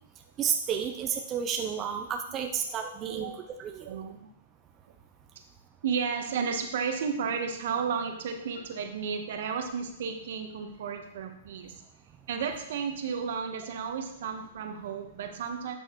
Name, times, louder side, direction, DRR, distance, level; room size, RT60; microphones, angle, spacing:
voice 1, 0.4-3.3 3.6-3.9, right 7 dB, 25° right, 3 dB, 0.7 m, -31 dB
voice 2, 2.9-3.4 3.8-4.3 5.8-11.8 12.3-15.8, right 6 dB, 65° right, 5 dB, 1.2 m, -33 dB
11.5 x 6.3 x 3.1 m, 0.78 s
hypercardioid pair, 135°, 0 cm